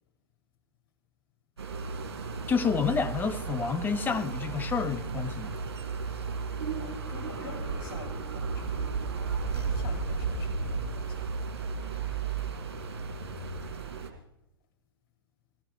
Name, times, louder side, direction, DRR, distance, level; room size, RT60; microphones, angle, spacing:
sound 1, 1.6-14.1, right 4 dB, 70° right, 2.4 m, -34 dB
voice 1, 2.5-5.5, left 5 dB, 15° left, 0.8 m, -29 dB
voice 2, 6.7-11.3, left 7 dB, 55° left, 4.3 m, -47 dB
22.0 x 17.5 x 3.3 m
figure-of-eight pair, 100°, 14 cm